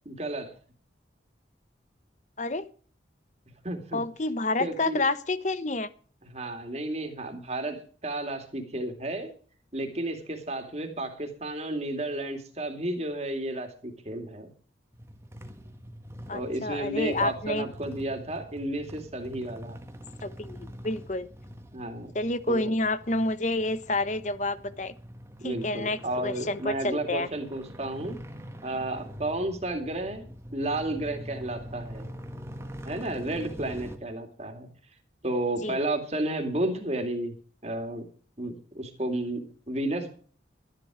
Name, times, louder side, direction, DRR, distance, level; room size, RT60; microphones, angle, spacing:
voice 1, 0.1-0.5 3.6-4.0 4.6-5.0 6.2-9.3 9.7-14.5 16.3-19.8 21.7-22.1 22.5-22.7 25.4-28.2 28.6-32.1 32.8-34.7 35.2-37.3 37.6-38.1 38.4-40.1, right 1 dB, 35° right, 5 dB, 2.5 m, -32 dB
voice 2, 3.9-5.9 16.3-17.7 20.2-21.3 22.1-24.9 25.4-27.3 35.6-35.8, left 2 dB, 40° left, 14 dB, 0.9 m, -29 dB
sound 1, 14.9-34.0, equal, 15° right, 1.5 m, -44 dB
13.0 x 10.5 x 4.9 m, 0.43 s
head